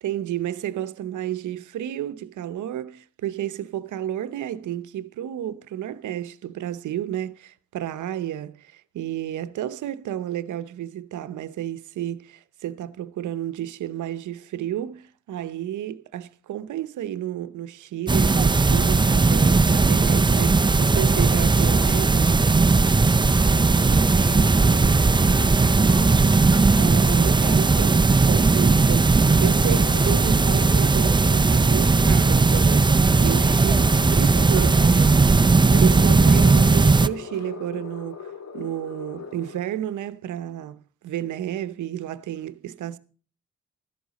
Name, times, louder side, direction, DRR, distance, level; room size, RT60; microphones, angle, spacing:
voice 1, 0.0-22.3 26.8-34.8 35.8-38.2 38.5-43.0, right 11 dB, 85° right, 0.8 m, -31 dB
sound 1, 18.1-37.1, right 3 dB, 15° right, 0.5 m, -18 dB
voice 2, 23.2-26.4 33.5-35.1, left 4 dB, 75° left, 2.4 m, -40 dB
sound 2, 23.9-39.6, left 6 dB, 60° left, 1.8 m, -41 dB
13.5 x 11.0 x 4.1 m
cardioid pair, 75°, 29 cm